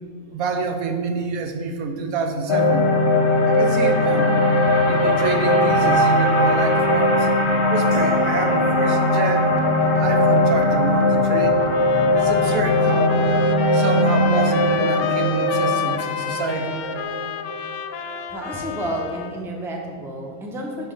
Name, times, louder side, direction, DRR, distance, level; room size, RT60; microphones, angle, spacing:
voice 1, 0.3-2.9 3.5-4.3 4.9-7.3 7.7-9.6 10.0-13.3 13.7-16.8, right 4 dB, 75° right, 6 dB, 1.2 m, -27 dB
sound 1, 2.5-18.7, left 1 dB, 50° left, 0.3 m, -19 dB
sound 2, 7.9-14.2 14.5-14.8, equal, 35° right, 1.8 m, -34 dB
sound 3, 11.6-19.4, left 9 dB, 80° left, 1.0 m, -31 dB
voice 2, 18.3-20.9, right 1 dB, ahead, 0 dB, 0.6 m, -30 dB
5.9 x 5.0 x 6.3 m, 2.2 s
omnidirectional pair, 1.5 m